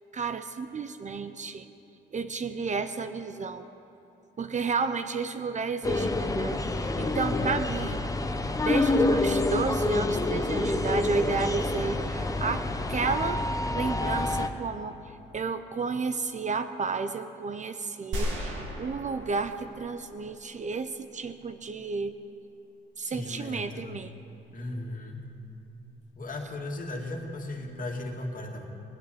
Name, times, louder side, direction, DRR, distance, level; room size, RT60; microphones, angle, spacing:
voice 1, 0.1-1.7 2.1-3.7 4.4-8.0 8.6-13.5 13.7-22.2 23.0-24.1, right 4 dB, 40° right, 10 dB, 0.7 m, -32 dB
sound 1, 5.8-14.5, left 2 dB, 15° left, 0.9 m, -27 dB
voice 2, 7.1-7.6 23.0-23.9 24.5-25.2 26.1-28.6, left 2 dB, 45° left, 1 dB, 2.3 m, -36 dB
sound 2, 18.1-20.4, equal, 85° right, 2.6 m, -35 dB
19.0 x 8.4 x 8.7 m, 2.7 s
cardioid pair, 90°, 20 cm